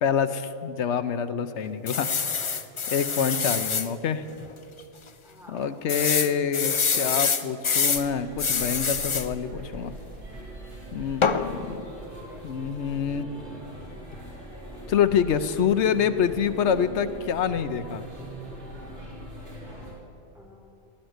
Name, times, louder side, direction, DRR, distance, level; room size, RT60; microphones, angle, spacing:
voice 1, 0.0-2.1 2.9-4.3 5.5-9.9 10.9-11.8 12.4-13.3 14.9-18.0, left 7 dB, 75° left, 12 dB, 1.0 m, -26 dB
sound 1, 1.9-3.9 4.4-4.5 4.8-4.9 5.9-8.1 8.4-9.3 11.2-11.5, left 5 dB, 40° left, 0.4 m, -25 dB
voice 2, 5.2-5.9 6.3-6.4 6.8-6.9 11.2-12.4 20.3-20.6, equal, ahead, -3 dB, 3.5 m, -49 dB
sound 2, 7.9-19.9, right 1 dB, 65° right, 3.6 m, -41 dB
16.0 x 11.5 x 8.0 m, 2.7 s
omnidirectional pair, 1.2 m